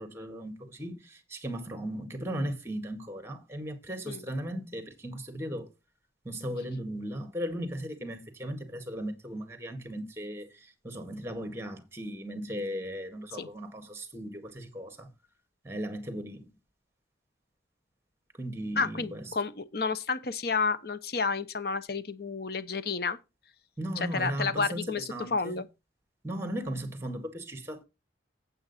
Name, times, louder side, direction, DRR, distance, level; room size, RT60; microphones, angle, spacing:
voice 1, 0.0-5.7 6.2-15.1 15.6-16.5 18.3-19.3 23.8-25.6 26.2-27.8, equal, 15° right, 1.8 m, -37 dB
voice 2, 18.8-23.2 24.1-25.0 25.3-25.6, left 4 dB, 55° left, 0.8 m, -30 dB
8.8 x 7.9 x 4.2 m
head